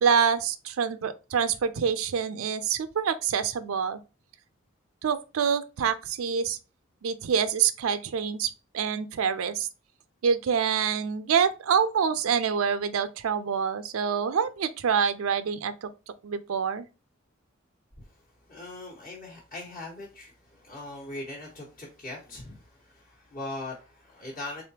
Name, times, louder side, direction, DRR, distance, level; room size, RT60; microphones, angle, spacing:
voice 1, 0.0-4.0 5.0-6.6 7.0-9.7 10.2-15.9 16.2-16.9, right 7 dB, 85° right, 0.4 m, -26 dB
voice 2, 18.5-24.6, left 2 dB, 45° left, 1.2 m, -40 dB
3.9 x 3.4 x 2.8 m
head